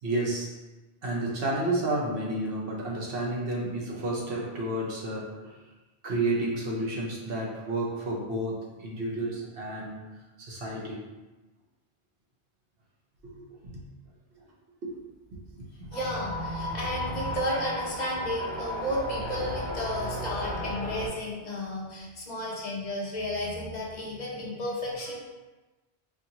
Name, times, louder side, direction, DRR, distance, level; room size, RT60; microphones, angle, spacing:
voice 1, 0.0-0.5 1.0-5.6 6.0-10.0 10.4-11.0 13.2-13.8 14.8-15.1 15.3-15.7, right 1 dB, 60° right, -3 dB, 1.0 m, -31 dB
voice 2, 15.9-25.2, left 1 dB, 45° left, -3 dB, 0.9 m, -33 dB
sound 1, 15.9-21.1, left 1 dB, 40° right, 1.4 m, -34 dB
4.4 x 2.8 x 2.8 m, 1.1 s
omnidirectional pair, 1.1 m